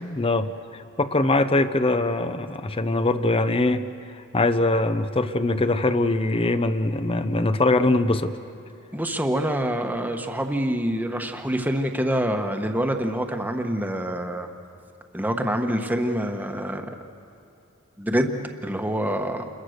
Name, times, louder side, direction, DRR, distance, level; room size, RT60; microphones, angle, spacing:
voice 1, 0.0-3.9 4.1-8.4, left 2 dB, 25° left, 11 dB, 0.7 m, -22 dB
voice 2, 8.9-14.5 15.1-16.8 18.0-19.5, equal, 10° right, 4 dB, 1.2 m, -26 dB
28.5 x 21.5 x 6.6 m, 2.8 s
head